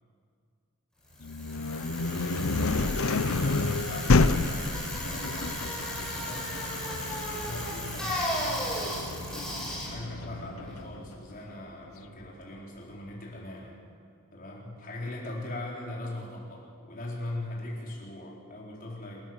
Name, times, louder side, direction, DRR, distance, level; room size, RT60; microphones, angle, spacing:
Bicycle, 1.1-11.2, left 1 dB, 5° left, 5.3 m, -35 dB
sound 1, 1.2-11.0, left 3 dB, 70° left, 0.8 m, -29 dB
voice 1, 3.3-6.5 7.1-13.8 14.3-19.2, left 1 dB, 40° left, -2 dB, 4.2 m, -41 dB
27.0 x 13.0 x 7.4 m, 2.2 s
head